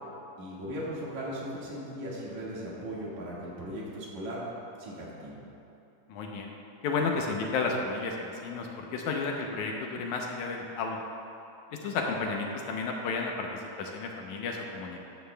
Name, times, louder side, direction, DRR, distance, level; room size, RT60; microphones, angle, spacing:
voice 1, 0.4-4.4 4.8-5.4, equal, 65° right, -6 dB, 3.0 m, -38 dB
voice 2, 6.1-6.5 6.8-11.0 11.8-15.1, left 4 dB, 75° left, 1 dB, 2.0 m, -32 dB
13.5 x 11.0 x 2.2 m, 2.9 s
omnidirectional pair, 3.7 m